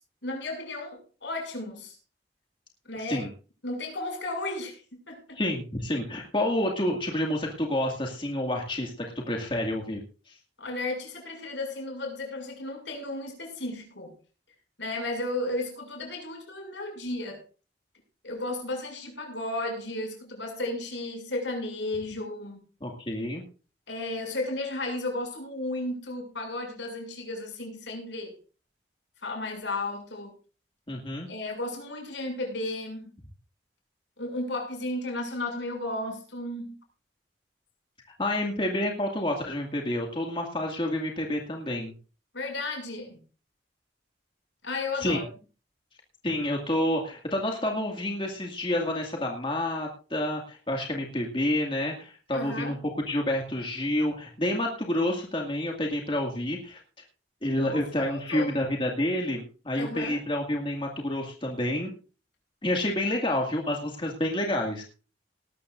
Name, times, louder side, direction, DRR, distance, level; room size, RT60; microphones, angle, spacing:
voice 1, 0.2-2.0 2.8-3.3 3.6-5.4 10.6-14.1 14.8-17.4 18.2-22.6 23.9-28.4 29.2-30.3 31.3-33.1 34.2-36.8 42.3-43.2 44.6-45.3 52.3-52.8 57.5-58.6 59.7-60.2, left 2 dB, 85° left, 3 dB, 6.8 m, -34 dB
voice 2, 5.4-8.9 9.3-10.0 10.3-10.4 22.8-23.4 30.9-31.3 38.2-41.9 45.0-45.2 46.2-52.8 53.1-56.8 57.4-61.9 62.6-64.8, left 1 dB, 30° left, 1 dB, 2.2 m, -29 dB
19.0 x 13.0 x 2.6 m, 0.35 s
head